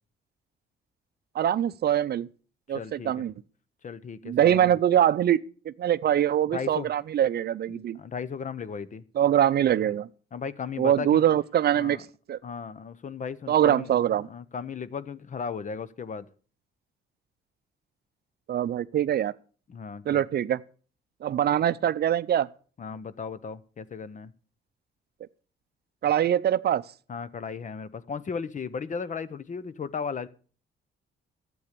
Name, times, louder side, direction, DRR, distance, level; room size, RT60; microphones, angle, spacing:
voice 1, 1.3-2.3 2.7-3.3 4.2-8.0 9.1-10.1 10.8-12.0 12.3-12.4 13.5-14.3 18.5-19.3 20.1-20.6 21.2-22.5 26.0-26.8, right 10 dB, 55° right, 0.5 m, -23 dB
voice 2, 2.7-3.3 3.8-4.8 6.5-6.9 7.7-9.0 10.3-11.2 11.7-12.0 12.4-13.9 14.3-16.3 19.7-20.2 22.8-24.3 27.1-30.3, left 6 dB, 40° left, 0.8 m, -36 dB
12.0 x 7.9 x 6.7 m
cardioid pair, 90°, 20 cm